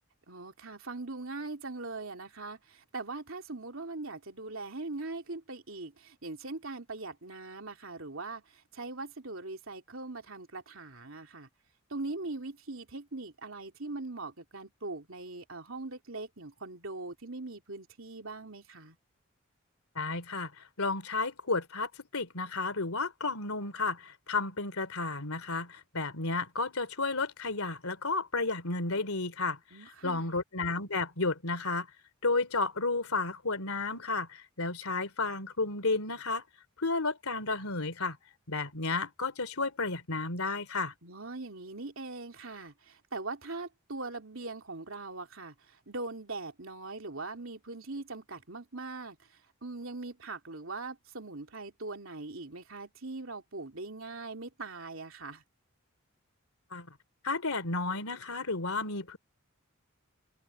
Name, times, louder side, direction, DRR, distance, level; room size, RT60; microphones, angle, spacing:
voice 1, 0.3-11.5 11.9-19.0 29.7-30.3 41.0-49.2 49.6-55.4, right 3 dB, 65° right, 3.2 m, -41 dB
voice 2, 19.9-20.5 20.8-29.6 30.0-31.9 32.2-36.4 36.8-38.2 38.5-40.9 56.7-56.9 57.2-59.2, left 3 dB, 85° left, 3.1 m, -32 dB
head